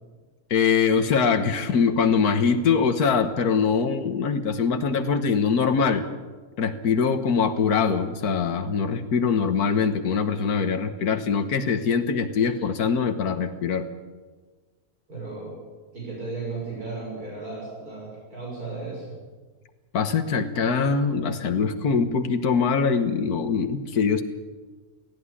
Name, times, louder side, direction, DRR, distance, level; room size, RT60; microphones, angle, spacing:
voice 1, 0.5-6.1 6.6-13.9 19.9-24.2, left 5 dB, 85° left, 8 dB, 1.7 m, -23 dB
voice 2, 15.1-15.5 15.9-19.1, right 3 dB, 75° right, -3 dB, 6.8 m, -35 dB
17.5 x 16.0 x 9.8 m, 1.4 s
omnidirectional pair, 1.6 m